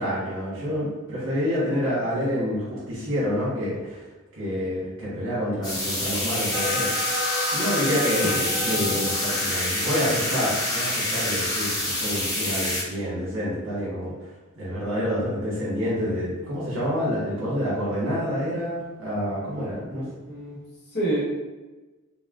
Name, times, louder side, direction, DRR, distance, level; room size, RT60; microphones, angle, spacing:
voice 1, 0.0-4.0 4.4-6.9 7.5-14.1 14.6-20.0, equal, 75° right, -8 dB, 1.3 m, -28 dB
sound 1, 5.6-12.8, left 1 dB, 20° left, 0.9 m, -27 dB
sound 2, 6.5-10.5, left 2 dB, ahead, 0.4 m, -33 dB
voice 2, 8.7-9.0 19.7-20.6 20.9-21.2, right 1 dB, 50° left, -8 dB, 0.9 m, -30 dB
4.3 x 2.0 x 2.4 m, 1.2 s
head